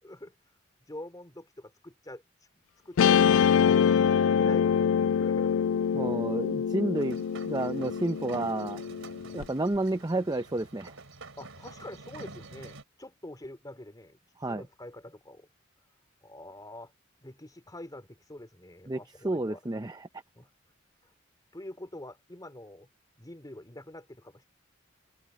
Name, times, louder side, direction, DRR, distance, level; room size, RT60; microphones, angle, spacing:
voice 1, 0.0-0.3 0.9-2.2 2.5-5.7 9.1-9.5 11.4-14.2 14.5-15.5 16.2-16.9 17.2-19.6 20.3-20.5 21.5-22.9 23.2-24.5, left 1 dB, 20° left, 3.0 m, -45 dB
Guitar, 3.0-9.4, left 7 dB, 75° left, 0.3 m, -25 dB
voice 2, 5.9-8.8 9.3-10.9 14.4-14.6 18.9-19.0 19.2-20.1, right 2 dB, 20° right, 0.7 m, -30 dB
sound 1, 7.0-12.8, right 3 dB, 85° right, 3.2 m, -48 dB
head